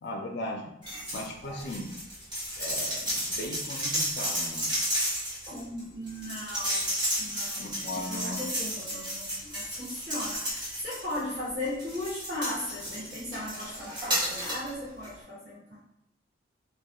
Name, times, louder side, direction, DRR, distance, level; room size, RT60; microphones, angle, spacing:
voice 1, 0.0-0.7 1.1-1.9 2.6-4.7 7.6-8.4, left 1 dB, 60° left, 0 dB, 0.4 m, -37 dB
sound 1, 0.8-1.3 1.6-11.3 11.8-14.7 15.0-15.1, equal, 25° right, 0.8 m, -32 dB
voice 2, 5.5-6.9 7.2-15.8, left 1 dB, 70° right, -14 dB, 1.1 m, -37 dB
2.3 x 2.0 x 2.7 m, 0.81 s
head